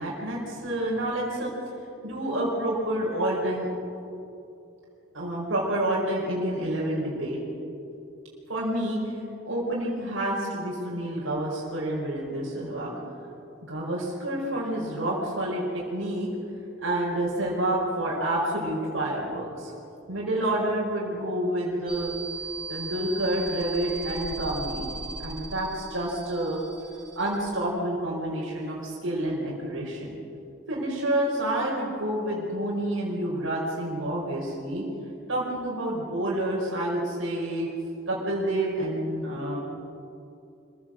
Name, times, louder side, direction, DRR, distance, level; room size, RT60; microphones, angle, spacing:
voice 1, 0.0-1.5 2.0-3.7 5.1-7.4 8.5-9.2 9.5-12.9 13.7-16.3 16.8-19.7 20.1-22.1 22.7-24.9 25.2-26.6 27.1-30.1 30.7-34.8 35.3-39.6, right 1 dB, 85° right, -4 dB, 4.9 m, -28 dB
sound 1, 21.9-27.7, right 3 dB, 20° left, 1.7 m, -38 dB
26.0 x 16.0 x 7.7 m, 2.7 s
head